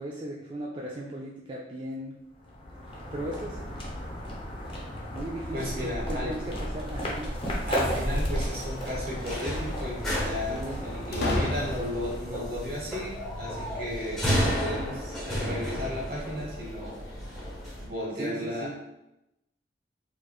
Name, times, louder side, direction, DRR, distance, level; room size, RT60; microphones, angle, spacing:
voice 1, 0.0-2.1 2.9-3.6 5.1-7.3 10.5-10.9 18.2-18.7, right 1 dB, 30° right, -3 dB, 0.3 m, -37 dB
sound 1, 2.3-13.1, equal, 30° left, 0.7 m, -34 dB
voice 2, 5.5-6.3 7.7-16.9 17.8-18.7, left 1 dB, 55° right, -3 dB, 1.1 m, -34 dB
sound 2, 7.4-17.8, equal, 5° left, 0.9 m, -33 dB
sound 3, 7.7-8.7 11.1-12.2, left 1 dB, 65° left, 0.6 m, -32 dB
4.4 x 2.4 x 2.3 m, 0.90 s
head